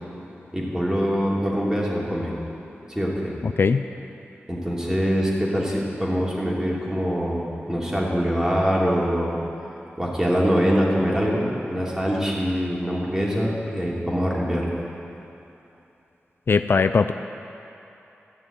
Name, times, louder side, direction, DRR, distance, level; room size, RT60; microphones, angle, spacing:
voice 1, 0.5-2.3 2.9-3.3 4.5-7.4 7.7-9.3 10.0-14.7, equal, 10° right, -5 dB, 3.1 m, -24 dB
voice 2, 16.5-17.1, left 5 dB, 55° left, 10 dB, 0.4 m, -19 dB
14.0 x 6.8 x 9.0 m, 2.9 s
cardioid pair, 65°, 4 cm